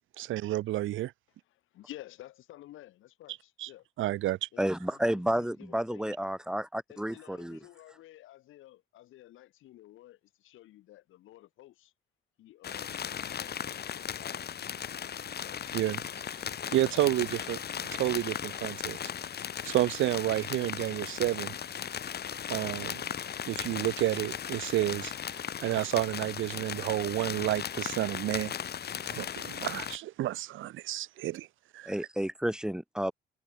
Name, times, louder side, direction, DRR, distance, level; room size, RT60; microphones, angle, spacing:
voice 1, 0.2-1.1 3.6-3.7 4.0-4.5 15.7-16.0 16.7-17.6 17.9-19.0 19.6-21.6 22.5-23.0 23.5-28.5 29.1-31.5 31.7-31.9, right 14 dB, 80° right, 1.0 m, -30 dB
voice 2, 1.4-3.9 4.5-6.1 6.9-11.9 12.4-14.6 15.1-17.8, left 15 dB, 85° left, 5.5 m, -53 dB
voice 3, 4.6-7.6 31.8-33.1, equal, 5° right, 3.4 m, -31 dB
sound 1, 12.6-30.0, left 8 dB, 55° left, 2.0 m, -37 dB
cardioid pair, 90°, 20 cm